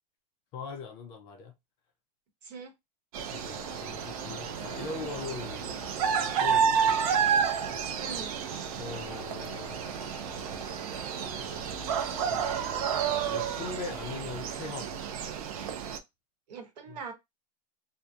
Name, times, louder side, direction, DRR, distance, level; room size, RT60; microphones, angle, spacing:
voice 1, 0.5-1.5 3.3-7.3 8.8-9.8 12.3-14.9 15.7-15.8 16.9-17.0, left 4 dB, 25° left, 0.3 m, -41 dB
voice 2, 2.4-2.7 8.0-8.3 16.5-17.1, right 5 dB, 80° right, 1.0 m, -42 dB
sound 1, 3.1-16.0, right 7 dB, 60° right, 0.5 m, -30 dB
sound 2, 3.4-13.0, left 3 dB, 60° left, 0.9 m, -49 dB
2.7 x 2.1 x 2.2 m
supercardioid pair, 165°, 21 cm